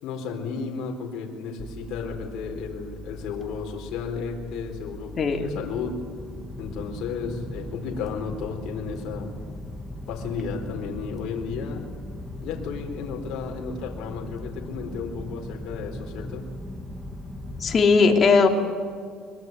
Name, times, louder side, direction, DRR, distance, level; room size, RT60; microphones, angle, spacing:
voice 1, 0.0-6.0 6.6-9.3 10.1-11.9 12.4-16.5, left 5 dB, 65° left, 1 dB, 4.2 m, -33 dB
sound 1, 1.6-17.7, left 1 dB, ahead, 2.9 m, -38 dB
voice 2, 17.6-18.5, left 4 dB, 35° left, 3 dB, 3.2 m, -18 dB
23.5 x 23.0 x 9.6 m, 2.1 s
cardioid pair, 130°, 0 cm